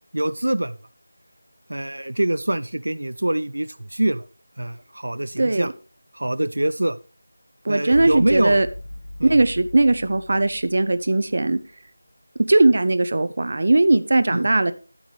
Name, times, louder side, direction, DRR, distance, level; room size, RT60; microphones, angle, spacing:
voice 1, 0.1-0.8 1.7-4.3 4.6-5.7 6.1-7.0 7.7-8.6 9.2-9.4 14.3-14.5, right 1 dB, 90° right, 14 dB, 0.5 m, -24 dB
voice 2, 5.4-5.7 7.6-8.7 9.2-11.6 12.5-14.7, right 2 dB, 45° right, 12 dB, 0.7 m, -19 dB
sound 1, 7.9-11.3, left 1 dB, 80° left, 1.6 m, -38 dB
12.0 x 7.8 x 3.3 m, 0.36 s
figure-of-eight pair, 175°, 0 cm